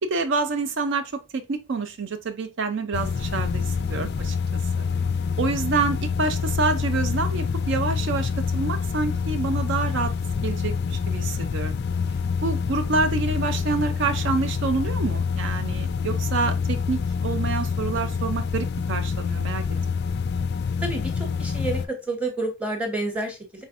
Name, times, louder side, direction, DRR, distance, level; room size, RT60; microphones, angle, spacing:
voice 1, 0.0-4.4 4.8-4.9 5.4-10.1 10.4-11.7 12.4-19.6, right 4 dB, 55° right, 0.5 m, -27 dB
sound 1, 2.9-21.9, left 5 dB, 50° left, 0.3 m, -26 dB
voice 2, 20.8-23.6, right 2 dB, 5° right, 0.9 m, -29 dB
5.0 x 3.2 x 2.5 m
head